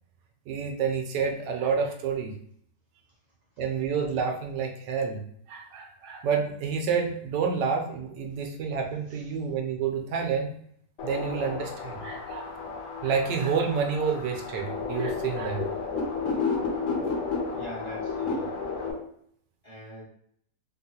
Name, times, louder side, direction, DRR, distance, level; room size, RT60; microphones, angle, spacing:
voice 1, 0.5-2.3 3.6-5.2 5.5-10.5 11.0-12.5 13.0-15.6, right 6 dB, 90° right, 3 dB, 1.2 m, -29 dB
sound 1, 11.0-18.9, left 4 dB, 75° left, 1.3 m, -32 dB
voice 2, 17.4-18.6 19.6-20.0, equal, 40° left, -7 dB, 0.5 m, -43 dB
3.6 x 2.3 x 2.7 m, 0.67 s
omnidirectional pair, 1.8 m